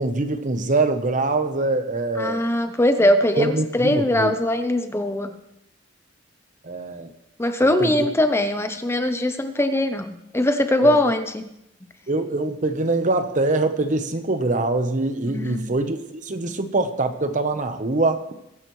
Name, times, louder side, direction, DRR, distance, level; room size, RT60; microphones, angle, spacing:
voice 1, 0.0-2.4 3.4-4.3 6.6-7.1 7.8-8.1 10.8-11.0 12.1-18.2, right 2 dB, 40° right, 8 dB, 1.0 m, -24 dB
voice 2, 2.2-5.4 7.4-11.5 15.2-15.7 16.5-16.6, left 1 dB, 15° left, 8 dB, 0.7 m, -21 dB
21.5 x 10.5 x 3.2 m, 0.83 s
head